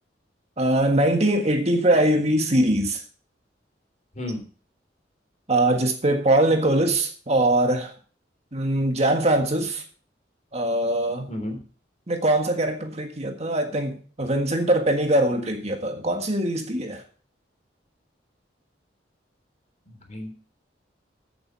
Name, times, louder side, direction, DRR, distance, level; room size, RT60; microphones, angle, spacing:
voice 1, 0.6-3.0 5.5-7.9 8.5-9.8 10.5-11.3 12.1-17.0, right 1 dB, 35° right, 1.6 m, -22 dB
voice 2, 19.9-20.3, left 1 dB, 40° left, 3.5 m, -32 dB
15.0 x 7.2 x 4.6 m
head